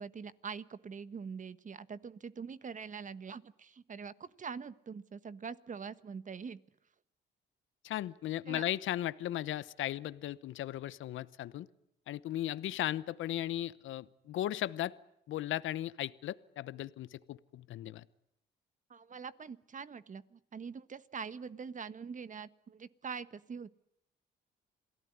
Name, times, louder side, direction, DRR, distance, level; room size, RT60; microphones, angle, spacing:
voice 1, 0.0-6.6 8.5-8.6 18.9-23.7, right 6 dB, 40° right, 15 dB, 1.3 m, -44 dB
voice 2, 7.8-11.7 12.1-14.9 15.3-18.0, left 13 dB, 80° left, 16 dB, 1.0 m, -36 dB
27.5 x 18.0 x 9.6 m, 0.81 s
cardioid pair, 90°, 20 cm